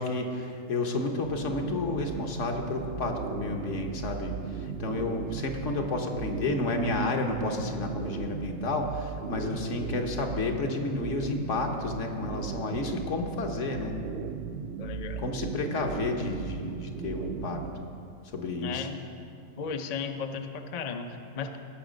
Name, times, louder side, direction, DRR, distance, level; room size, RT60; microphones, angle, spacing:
voice 1, 0.0-14.0 15.2-17.9 18.3-18.9, left 3 dB, 65° left, 3 dB, 1.3 m, -31 dB
sound 1, 1.2-17.7, right 7 dB, 65° right, 0.6 m, -37 dB
voice 2, 14.8-15.2 18.6-19.0 19.6-21.6, left 5 dB, 50° left, 6 dB, 0.4 m, -35 dB
16.5 x 6.2 x 5.1 m, 2.6 s
omnidirectional pair, 1.4 m